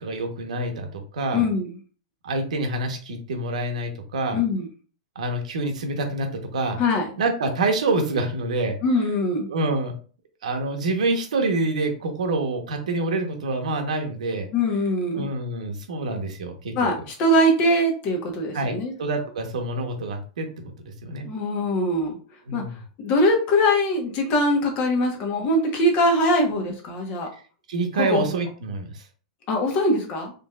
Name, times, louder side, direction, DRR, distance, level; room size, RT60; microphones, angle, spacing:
voice 1, 0.0-1.5 2.2-4.4 5.1-6.8 7.2-8.8 9.5-10.0 10.4-14.5 15.1-16.7 18.5-21.3 22.5-22.8 27.7-29.0, right 2 dB, 85° right, 4 dB, 1.1 m, -27 dB
voice 2, 1.3-1.7 4.3-4.7 6.8-7.1 8.8-9.5 14.5-15.3 16.7-18.9 21.2-22.2 22.5-22.6 23.0-27.3 27.9-28.3 29.5-30.3, left 1 dB, 35° left, 2 dB, 1.1 m, -22 dB
4.0 x 3.2 x 2.4 m, 0.39 s
supercardioid pair, 150°, 4 cm